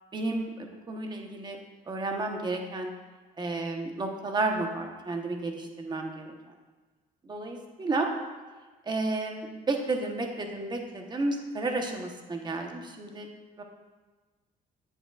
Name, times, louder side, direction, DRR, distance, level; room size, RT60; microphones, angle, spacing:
voice 1, 0.1-1.6 1.9-2.9 3.4-6.3 7.2-8.1 8.9-13.3 13.6-13.7, right 2 dB, 25° right, 3 dB, 1.1 m, -32 dB
8.5 x 8.0 x 2.4 m, 1.3 s
cardioid pair, 110°, 17 cm